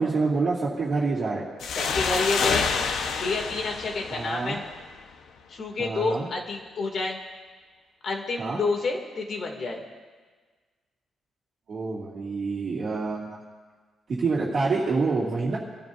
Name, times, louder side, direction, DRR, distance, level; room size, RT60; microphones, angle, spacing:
voice 1, 0.0-1.4 4.1-4.6 5.8-6.3 8.4-8.6 11.7-13.4 14.1-15.6, right 4 dB, 40° right, -8 dB, 2.5 m, -27 dB
sound 1, 1.6-5.0, left 5 dB, 75° left, 1.1 m, -28 dB
voice 2, 1.7-2.7 3.2-4.6 5.5-7.2 8.0-9.8, left 3 dB, 45° left, 2 dB, 2.6 m, -29 dB
26.0 x 14.5 x 2.7 m, 1.4 s
cardioid pair, 160°, 0 cm